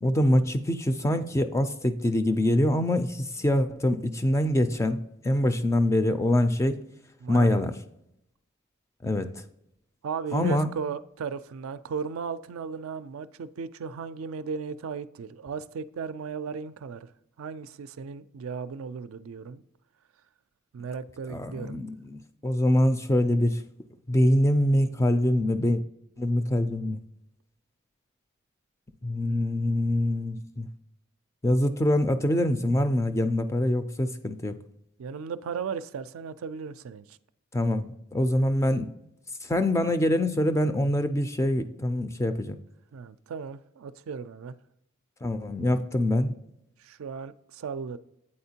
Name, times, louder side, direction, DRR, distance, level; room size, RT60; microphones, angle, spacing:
voice 1, 0.0-6.8 7.3-7.7 9.0-9.3 10.3-10.7 21.3-23.6 24.1-25.8 26.2-27.0 29.0-30.7 31.4-34.6 37.5-37.9 38.1-38.9 39.4-42.6 45.2-46.3, left 1 dB, 15° left, 9 dB, 0.3 m, -24 dB
voice 2, 7.2-7.6 10.0-17.1 17.4-19.6 20.7-21.8 29.2-29.8 35.0-37.2 42.9-44.6 46.8-48.0, right 6 dB, 80° right, 13 dB, 0.4 m, -36 dB
8.6 x 4.3 x 2.8 m, 0.81 s
head